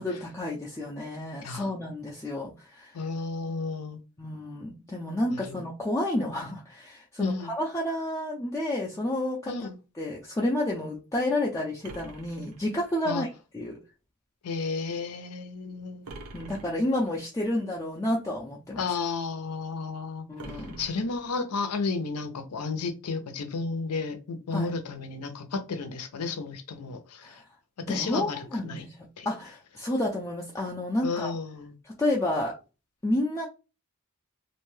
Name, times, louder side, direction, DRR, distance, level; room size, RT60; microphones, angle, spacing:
voice 1, 0.0-2.9 4.2-9.7 10.0-13.3 13.5-13.8 16.3-18.8 20.3-20.8 24.5-24.7 27.2-27.4 27.9-31.4 31.8-32.5 33.0-33.5, left 1 dB, 15° left, 0.3 m, -30 dB
voice 2, 2.9-4.0 5.3-5.6 7.2-7.5 9.5-9.8 13.1-13.2 14.4-16.1 18.8-20.3 20.8-27.4 27.9-28.4 28.6-28.8 29.2-29.3 31.0-31.7, left 4 dB, 85° left, 0.6 m, -32 dB
sound 1, 11.8-13.2 16.0-17.2 20.4-21.7, right 2 dB, 75° right, 0.5 m, -46 dB
2.5 x 2.2 x 3.1 m
head